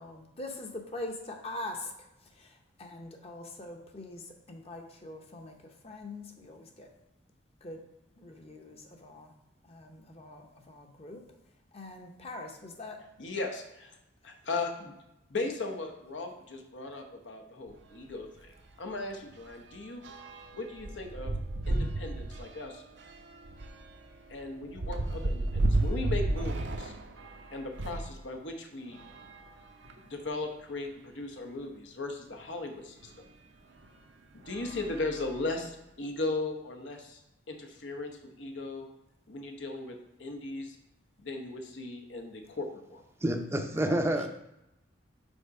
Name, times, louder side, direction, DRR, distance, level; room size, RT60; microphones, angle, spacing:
voice 1, 0.0-6.9 7.6-7.8 8.2-9.3 9.6-11.2 11.7-13.0 14.5-14.6 43.8-44.0, left 2 dB, 35° left, 3 dB, 0.8 m, -43 dB
voice 2, 13.2-13.9 14.2-14.9 15.3-20.0 20.5-21.3 21.7-22.8 24.3-26.9 27.5-29.0 30.0-33.3 34.3-37.2 37.5-38.9 39.3-40.8 41.2-43.0, left 2 dB, 80° left, 3 dB, 1.0 m, -37 dB
sound 1, 17.7-17.9 18.2-18.4 18.7-28.1 28.9-30.2 30.9-31.0 31.2-31.3 33.0-33.1 33.8-34.1 34.4-35.7, right 2 dB, 70° right, 0.6 m, -34 dB
voice 3, 43.2-44.3, right 1 dB, 15° right, 5 dB, 0.5 m, -28 dB
5.4 x 4.1 x 4.7 m, 0.88 s
head